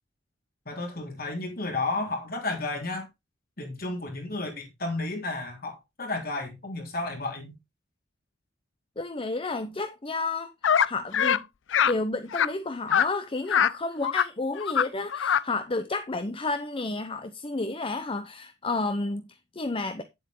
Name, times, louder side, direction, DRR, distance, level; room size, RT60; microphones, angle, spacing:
voice 1, 0.7-3.1 3.6-7.5, left 2 dB, 50° left, 3.5 m, -32 dB
voice 2, 9.0-10.5 10.8-11.5 11.9-20.0, left 3 dB, 25° left, 0.7 m, -31 dB
sound 1, 10.6-10.9 11.1-11.4 11.7-11.9 12.3-12.5 12.9-13.1 13.5-13.7 14.0-14.3 14.6-14.8 15.1-15.4, left 8 dB, 65° left, 0.5 m, -23 dB
9.9 x 7.9 x 3.7 m
head